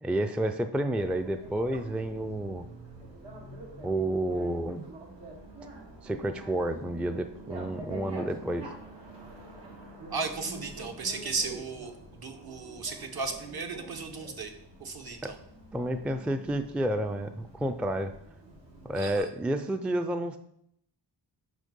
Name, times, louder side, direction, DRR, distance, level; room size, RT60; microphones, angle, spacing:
voice 1, 0.0-2.6 3.8-4.8 6.0-8.7 15.2-15.3 15.7-18.1 18.8-20.4, right 1 dB, 5° right, 7 dB, 0.3 m, -30 dB
Bicycle, 1.0-19.2, right 2 dB, 80° right, 2.1 m, -46 dB
voice 2, 10.1-14.5 14.8-15.4 18.9-19.3, right 4 dB, 60° right, 5 dB, 1.1 m, -35 dB
6.4 x 5.4 x 5.3 m, 0.74 s
wide cardioid pair, 120°, 42 cm